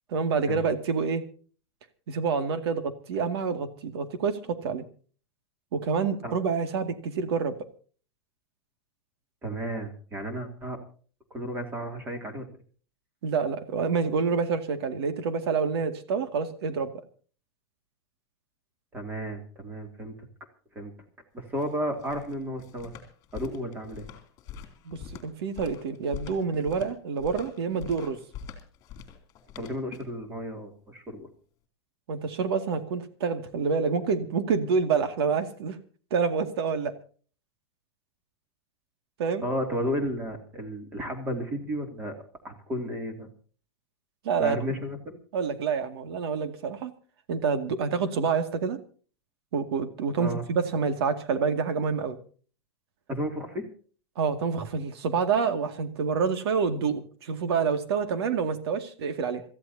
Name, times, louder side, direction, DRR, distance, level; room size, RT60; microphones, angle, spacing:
voice 1, 0.1-1.2 2.1-4.8 5.7-7.6 13.2-16.9 24.8-28.2 32.1-35.8 36.1-36.9 39.2-39.4 44.2-44.6 45.3-46.9 47.3-48.8 49.5-52.2 54.2-59.4, right 5 dB, 65° right, 8 dB, 2.3 m, -27 dB
voice 2, 9.4-10.8 11.3-12.5 18.9-20.1 20.7-20.9 21.3-22.9 23.3-24.1 29.5-31.3 39.4-42.1 42.4-43.3 44.4-45.2 50.2-50.4 53.1-53.7, equal, 15° right, 5 dB, 2.6 m, -33 dB
sound 1, 21.4-30.2, left 7 dB, 25° left, 2.9 m, -44 dB
27.0 x 14.5 x 2.8 m, 0.42 s
supercardioid pair, 170°, 14 cm